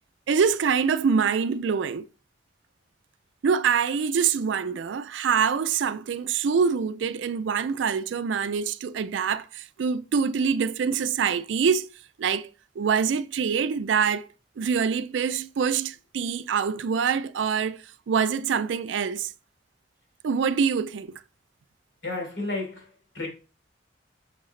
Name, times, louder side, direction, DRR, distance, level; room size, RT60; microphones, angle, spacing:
voice 1, 0.3-2.0 3.4-11.9 12.2-12.5 12.8-14.3 14.6-19.3 20.2-21.1, right 6 dB, 85° right, 0.4 m, -25 dB
voice 2, 22.0-23.3, left 2 dB, 70° left, 3.2 m, -32 dB
6.5 x 6.3 x 3.2 m
head